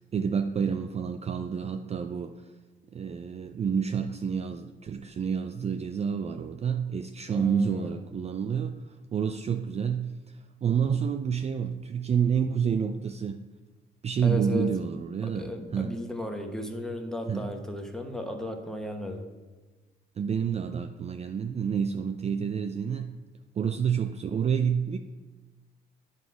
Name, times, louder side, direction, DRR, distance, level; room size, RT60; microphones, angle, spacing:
voice 1, 0.0-2.5 2.9-13.5 14.0-16.0 17.3-17.5 20.2-23.2 23.5-25.0, right 7 dB, 35° right, 6 dB, 0.4 m, -29 dB
voice 2, 7.3-7.9 14.2-14.7 15.2-19.2, left 1 dB, 5° left, 4 dB, 1.0 m, -35 dB
9.5 x 4.2 x 4.6 m, 1.2 s
cardioid pair, 90°, 20 cm